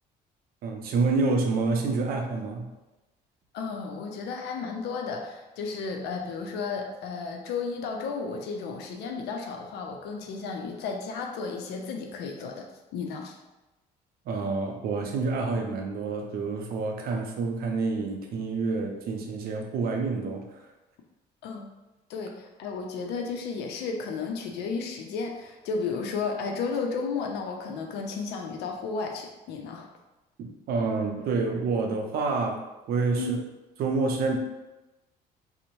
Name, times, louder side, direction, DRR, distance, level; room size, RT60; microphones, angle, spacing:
voice 1, 0.6-2.7 14.3-20.7 30.4-32.6 32.9-33.4 33.8-34.4, right 4 dB, 65° right, 2 dB, 0.5 m, -28 dB
voice 2, 3.5-12.7 12.9-13.4 21.4-21.7 22.1-29.9 33.2-33.3, left 4 dB, 80° left, 2 dB, 0.5 m, -33 dB
2.6 x 2.0 x 2.9 m, 1.0 s
cardioid pair, 110°, 17 cm